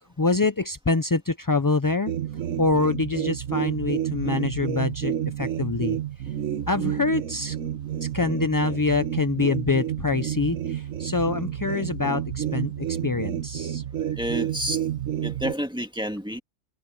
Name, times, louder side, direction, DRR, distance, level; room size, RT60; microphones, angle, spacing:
voice 1, 0.2-2.1 2.6-6.0 6.7-7.6 8.0-13.8, left 3 dB, 30° left, 0.4 m, -25 dB
sound 1, 2.1-15.5, right 10 dB, 85° right, 1.4 m, -30 dB
voice 2, 14.1-14.8 15.2-16.4, equal, 5° right, 1.8 m, -29 dB
omnidirectional pair, 1.3 m